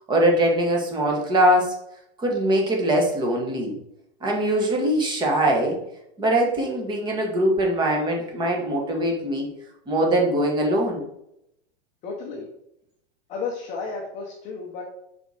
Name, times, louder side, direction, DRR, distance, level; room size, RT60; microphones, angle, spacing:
voice 1, 0.1-1.8 2.2-3.8 4.2-5.8 6.2-9.5 9.9-11.0, right 1 dB, 15° right, 0 dB, 1.1 m, -22 dB
voice 2, 12.0-12.5 13.3-14.8, left 4 dB, 20° left, -1 dB, 0.8 m, -32 dB
5.4 x 4.3 x 4.8 m, 0.79 s
supercardioid pair, 155°, 33 cm